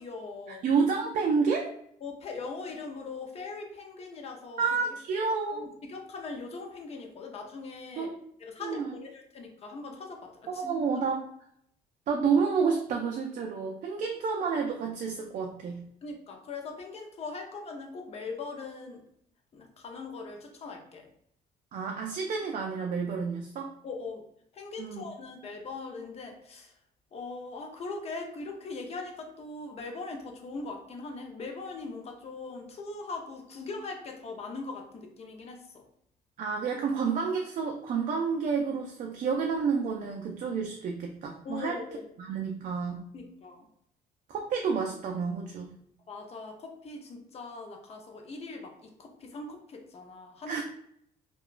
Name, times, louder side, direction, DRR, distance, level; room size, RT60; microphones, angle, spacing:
voice 1, 0.0-0.7 2.0-4.6 5.5-8.1 8.4-10.8 16.0-19.0 19.5-21.1 23.8-24.2 24.5-26.7 27.1-35.8 41.4-42.0 43.1-43.7 46.1-50.6, left 3 dB, 40° left, 3 dB, 0.6 m, -40 dB
voice 2, 0.6-1.8 4.6-5.6 8.0-8.2 8.6-8.9 10.5-11.2 12.1-15.9 21.7-23.7 24.8-25.1 36.4-41.8 42.2-43.0 44.3-45.7 50.5-50.6, right 5 dB, 50° right, 1 dB, 0.4 m, -29 dB
2.8 x 2.2 x 2.4 m, 0.70 s
cardioid pair, 110°, 17 cm